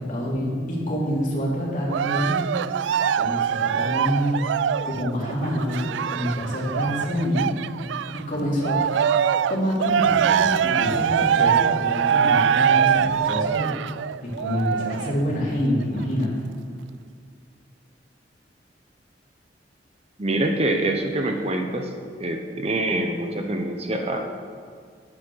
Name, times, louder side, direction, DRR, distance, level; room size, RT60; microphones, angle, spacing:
voice 1, 0.0-2.4 3.2-4.4 4.8-7.5 8.1-8.8 9.5-13.7 14.2-16.3, equal, 45° left, -5 dB, 3.3 m, -26 dB
Cheering, 1.9-8.2 8.6-15.2 15.8-15.9, right 8 dB, 85° right, 0.3 m, -23 dB
voice 2, 20.2-21.9 22.2-24.2, right 1 dB, 35° right, 4 dB, 1.0 m, -25 dB
10.5 x 8.7 x 6.4 m, 2.2 s
head